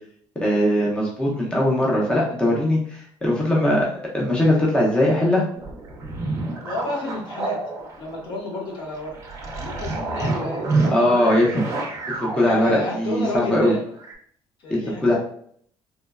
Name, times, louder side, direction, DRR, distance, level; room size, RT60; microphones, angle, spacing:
voice 1, 0.4-3.9 4.1-5.4 10.9-11.5 12.2-13.7 14.7-15.1, left 1 dB, 10° left, -4 dB, 0.6 m, -20 dB
sound 1, 5.5-13.5 14.0-14.1, right 3 dB, 35° right, 0.5 m, -29 dB
voice 2, 6.6-7.6 8.0-9.2 9.5-12.0 12.3-13.8 14.6-15.1, left 2 dB, 60° left, -2 dB, 0.9 m, -31 dB
2.9 x 2.1 x 2.3 m, 0.62 s
cardioid pair, 140°, 10 cm